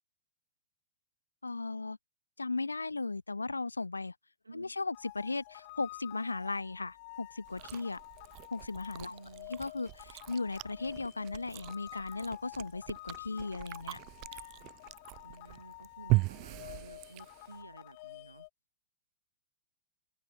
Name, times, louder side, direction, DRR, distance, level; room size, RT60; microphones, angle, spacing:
voice 1, 1.4-2.0 2.4-4.1 4.5-8.0 8.5-9.1 9.5-14.0, left 3 dB, 80° left, 1.0 m, -37 dB
voice 2, 4.4-4.8 9.1-9.6 15.2-18.5, right 3 dB, 85° right, 6.2 m, -53 dB
sound 1, 4.9-18.5, left 23 dB, 45° left, 1.0 m, -50 dB
Chewing mastication, 7.4-17.6, right 25 dB, 35° right, 0.4 m, -38 dB
sound 2, 11.9-12.7 13.0-13.3 14.3-15.0, right 7 dB, 65° right, 7.6 m, -61 dB
open air
figure-of-eight pair, 105°, 0 cm